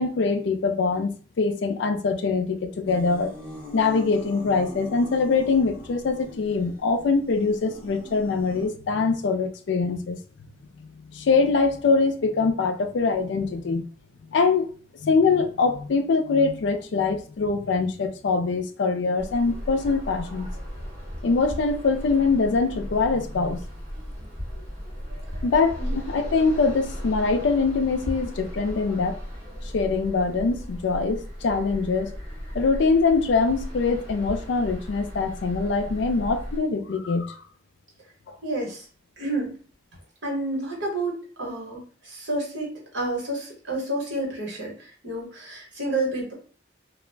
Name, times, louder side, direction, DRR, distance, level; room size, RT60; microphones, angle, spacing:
voice 1, 0.0-3.3 3.7-10.2 10.8-13.8 14.3-14.7 15.0-20.5 21.2-23.6 25.4-29.2 29.7-32.2 32.5-37.4 38.3-38.4, left 4 dB, 75° left, 0.4 m, -23 dB
sound 1, 2.9-8.7, left 1 dB, 10° right, 1.0 m, -42 dB
sound 2, 19.2-36.6, equal, 35° right, 1.3 m, -36 dB
voice 2, 38.4-38.9 39.2-39.6 40.2-46.3, right 2 dB, 70° right, 1.2 m, -30 dB
2.4 x 2.0 x 3.2 m
head